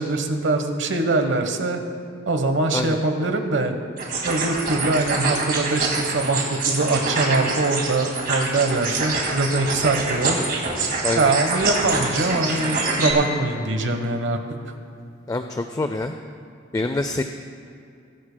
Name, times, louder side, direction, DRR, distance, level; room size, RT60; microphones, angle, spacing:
voice 1, 0.0-1.8 2.3-3.7 4.2-10.4 10.6-10.7 11.2-14.4, right 2 dB, 65° right, 6 dB, 1.1 m, -23 dB
sound 1, 4.0-13.1, right 3 dB, 50° right, 2.1 m, -25 dB
sound 2, 9.8-9.9 10.4-10.5 11.9-14.4 16.1-16.2, left 1 dB, 50° left, 1.9 m, -37 dB
voice 2, 11.0-11.3 15.3-16.1 16.7-17.2, left 2 dB, 20° left, 7 dB, 0.4 m, -25 dB
21.5 x 12.0 x 2.2 m, 2.5 s
head